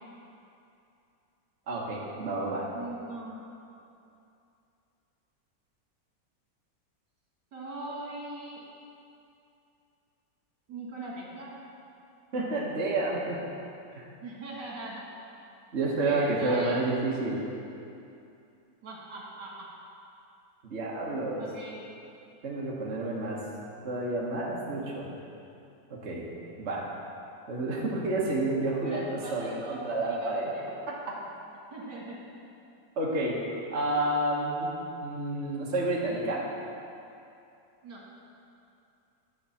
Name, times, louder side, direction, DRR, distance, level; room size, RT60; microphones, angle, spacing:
voice 1, 1.7-2.6 12.3-13.4 13.9-14.0 15.7-17.4 20.6-21.5 22.4-23.4 23.8-25.1 26.0-26.2 26.6-26.8 27.5-30.5 30.9-31.1 33.0-33.4 33.7-34.7 35.0-36.4, right 2 dB, 40° right, -5 dB, 1.4 m, -30 dB
voice 2, 2.7-3.4 7.5-8.6 10.7-11.6 14.2-15.0 16.0-16.8 18.8-19.7 21.4-21.8 28.8-30.7 31.7-32.6 37.8-38.0, right 2 dB, 70° right, -4 dB, 2.4 m, -41 dB
11.5 x 4.6 x 7.1 m, 2.7 s
omnidirectional pair, 1.9 m